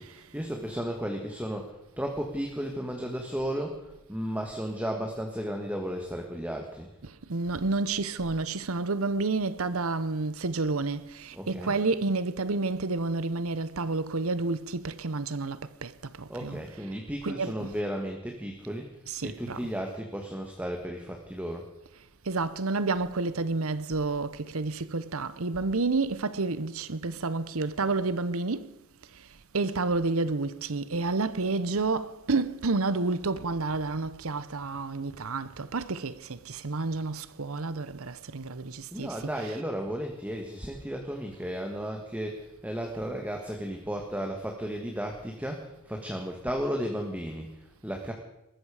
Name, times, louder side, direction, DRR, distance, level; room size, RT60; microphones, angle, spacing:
voice 1, 0.0-6.9 11.3-11.8 16.3-18.9 19.2-21.7 38.9-48.1, equal, 5° right, 1.6 m, -34 dB
voice 2, 7.0-15.9 16.2-16.6 17.2-17.7 19.1-19.7 22.3-28.7 29.5-39.6, right 3 dB, 70° right, 0.9 m, -30 dB
20.0 x 14.0 x 5.0 m
head